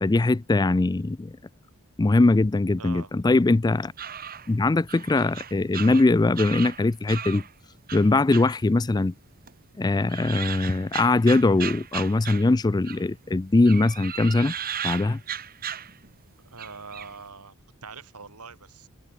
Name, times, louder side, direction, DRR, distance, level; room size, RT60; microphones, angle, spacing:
voice 1, 0.0-1.4 2.0-3.9 4.5-7.4 7.9-9.1 9.8-14.5 14.8-15.2, left 2 dB, 20° left, 0.3 m, -21 dB
voice 2, 2.8-3.1 16.4-18.9, right 4 dB, 90° right, 2.6 m, -43 dB
sound 1, 3.7-7.5 7.9-9.2 9.5-13.1 13.6-16.2 16.6-17.2, right 9 dB, 40° right, 1.9 m, -36 dB
open air
head